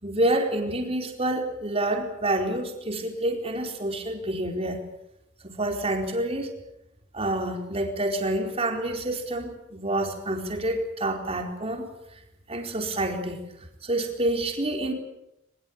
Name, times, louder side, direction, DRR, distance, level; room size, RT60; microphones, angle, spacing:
voice 1, 0.0-4.8 5.4-6.5 7.1-11.9 12.5-13.4 13.8-14.9, right 1 dB, 30° right, 3 dB, 4.3 m, -28 dB
22.5 x 22.5 x 8.7 m, 0.84 s
head